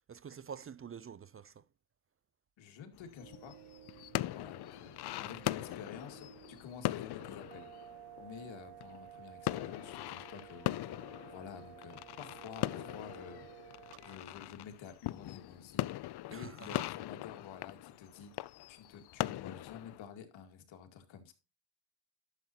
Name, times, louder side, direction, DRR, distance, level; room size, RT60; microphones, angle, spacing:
voice 1, 0.1-1.6 16.3-16.8, right 7 dB, 30° right, 0.4 m, -47 dB
voice 2, 2.6-3.6 4.3-7.7 8.2-18.3 18.7-21.3, left 7 dB, 85° left, 2.2 m, -50 dB
sound 1, 2.9-9.2 9.4-20.1, left 15 dB, 60° left, 0.5 m, -40 dB
sound 2, 3.2-14.2, right 14 dB, 80° right, 0.7 m, -54 dB
11.5 x 7.3 x 2.8 m
cardioid pair, 75°, 45 cm